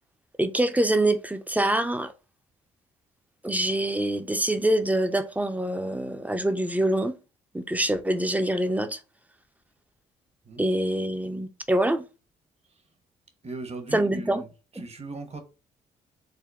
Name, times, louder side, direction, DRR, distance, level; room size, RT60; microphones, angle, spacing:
voice 1, 0.4-2.1 3.4-7.1 7.5-9.0 10.6-12.0 13.9-14.4, right 1 dB, 10° right, 0.4 m, -25 dB
voice 2, 13.4-14.5 14.8-15.4, right 2 dB, 35° right, 0.8 m, -38 dB
3.6 x 2.0 x 2.2 m
hypercardioid pair, 55°, 18 cm